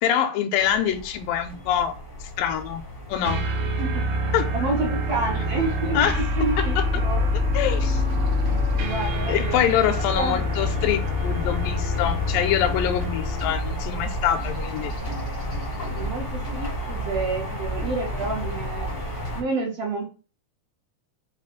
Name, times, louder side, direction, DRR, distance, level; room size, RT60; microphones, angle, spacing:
voice 1, 0.0-1.9 2.2-2.8 3.1-3.4 4.3-4.7 5.9-6.2 6.6-6.8 7.5-8.0 9.3-14.9, left 9 dB, 85° left, 9 dB, 2.3 m, -25 dB
sound 1, 0.6-19.4, equal, 55° left, 0.6 m, -32 dB
sound 2, 3.2-13.6, left 2 dB, 70° right, 1.3 m, -26 dB
voice 2, 4.5-6.0 6.3-7.3 8.4-9.6 10.1-10.4 15.9-18.9 19.3-20.0, right 3 dB, 85° right, -1 dB, 1.3 m, -29 dB
5.3 x 2.5 x 3.5 m, 0.36 s
omnidirectional pair, 3.9 m